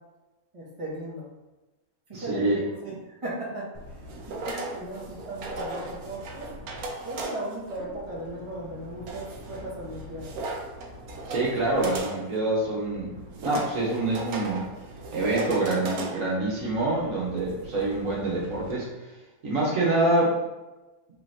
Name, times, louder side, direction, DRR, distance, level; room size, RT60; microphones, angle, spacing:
voice 1, 0.5-1.3 2.1-4.0 4.3-6.5 7.0-10.3 11.6-11.7, right 1 dB, 25° right, -6 dB, 1.3 m, -37 dB
voice 2, 2.1-2.6 11.3-14.7 15.1-18.9 19.4-20.3, right 2 dB, 65° right, -5 dB, 1.6 m, -26 dB
sound 1, 3.7-18.7, right 2 dB, 90° right, 1.2 m, -38 dB
5.5 x 3.4 x 2.8 m, 1.1 s
omnidirectional pair, 1.5 m